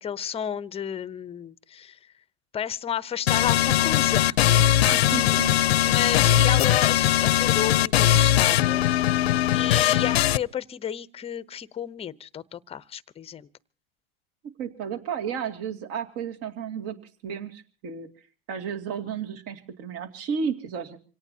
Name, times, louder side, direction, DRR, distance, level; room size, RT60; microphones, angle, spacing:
voice 1, 0.0-2.0 2.5-4.4 5.2-5.4 5.8-8.9 9.5-13.5, left 9 dB, 20° left, 0.8 m, -32 dB
sound 1, 3.3-10.4, left 12 dB, 85° left, 0.7 m, -20 dB
voice 2, 4.8-5.6 14.6-17.0 17.2-18.1 18.5-21.0, right 7 dB, 50° right, 2.5 m, -32 dB
27.0 x 17.5 x 2.8 m
hypercardioid pair, 115°, 31 cm